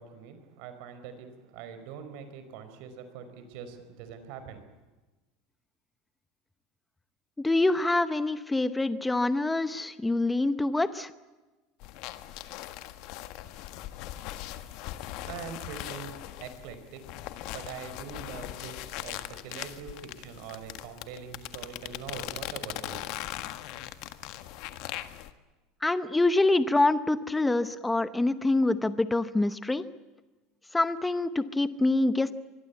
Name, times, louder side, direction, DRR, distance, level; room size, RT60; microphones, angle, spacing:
voice 1, 0.0-4.7 15.0-17.0 17.5-23.1, right 7 dB, 60° right, 9 dB, 5.0 m, -43 dB
voice 2, 7.4-11.1 25.8-29.8 30.7-32.3, left 2 dB, 5° left, 13 dB, 0.8 m, -25 dB
sound 1, 11.8-25.3, left 14 dB, 55° left, 1.7 m, -40 dB
25.0 x 22.0 x 8.4 m, 1.2 s
cardioid pair, 165°, 0 cm